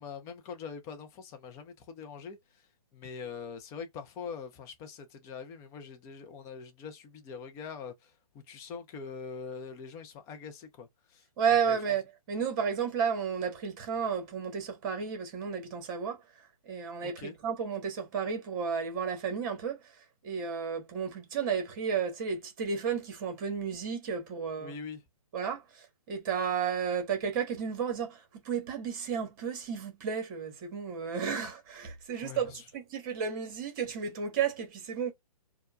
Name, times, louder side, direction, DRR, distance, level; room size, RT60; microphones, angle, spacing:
voice 1, 0.0-2.7 2.9-11.2 11.7-11.8 17.0-17.3 24.6-25.0 32.2-32.6, left 6 dB, 15° left, 0.6 m, -43 dB
voice 2, 11.4-16.2 16.7-19.8 20.2-24.7 25.3-35.1, right 7 dB, 35° right, 1.3 m, -32 dB
4.3 x 2.3 x 2.3 m
figure-of-eight pair, 130°, 19 cm